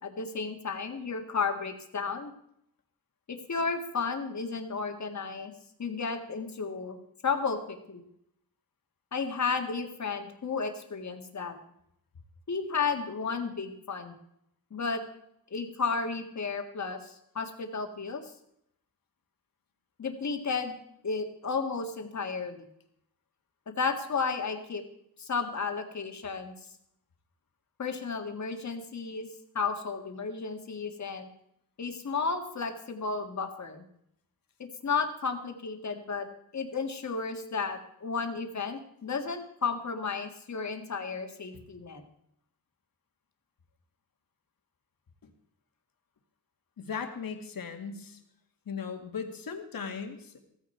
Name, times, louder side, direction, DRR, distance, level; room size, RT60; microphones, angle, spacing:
voice 1, 0.0-2.3 3.3-5.5 5.8-7.0 7.2-8.0 9.1-11.6 12.5-14.1 14.7-15.0 15.5-18.3 20.0-20.8 21.0-22.7 23.8-24.8 25.2-26.5 27.8-29.3 29.5-31.3 31.8-33.8 34.6-36.3 36.5-42.0, left 5 dB, 50° left, 5 dB, 1.9 m, -33 dB
voice 2, 46.8-48.2 48.7-50.4, left 6 dB, 70° left, 5 dB, 2.1 m, -37 dB
16.0 x 15.0 x 4.5 m, 0.75 s
wide cardioid pair, 135°, 36 cm